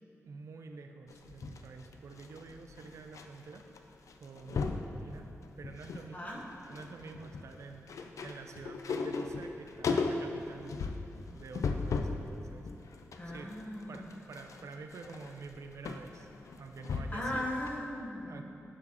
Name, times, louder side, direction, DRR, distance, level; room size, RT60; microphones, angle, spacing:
voice 1, 0.2-3.6 4.2-5.3 5.6-6.4 6.7-11.0 11.3-13.5 13.9-17.4 18.3-18.4, right 4 dB, 70° right, 5 dB, 0.4 m, -48 dB
sound 1, 1.1-3.3 3.5-3.8 4.1-4.9 5.4-6.1 6.4-12.2 12.7-17.3 17.7-17.8, left 4 dB, 80° left, 0.4 m, -36 dB
voice 2, 6.1-6.4 13.2-14.1 16.9-18.4, left 1 dB, 30° left, -4 dB, 1.2 m, -38 dB
10.5 x 6.1 x 2.9 m, 2.8 s
wide cardioid pair, 155°, 5 cm